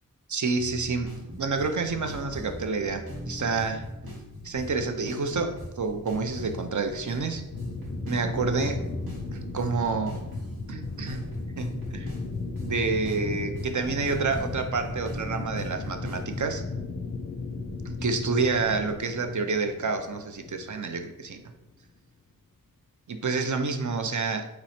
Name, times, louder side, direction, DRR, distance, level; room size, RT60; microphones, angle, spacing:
voice 1, 0.3-3.8 4.4-7.4 8.0-8.9 9.5-10.2 10.7-12.1 12.6-16.6 17.8-21.4 23.1-24.5, right 4 dB, 55° right, 6 dB, 0.5 m, -28 dB
sound 1, 0.6-16.5, equal, 85° right, 1.3 m, -39 dB
sound 2, 7.5-21.8, left 3 dB, 40° left, 0.4 m, -37 dB
3.1 x 3.0 x 4.1 m, 0.94 s
wide cardioid pair, 45°, 35 cm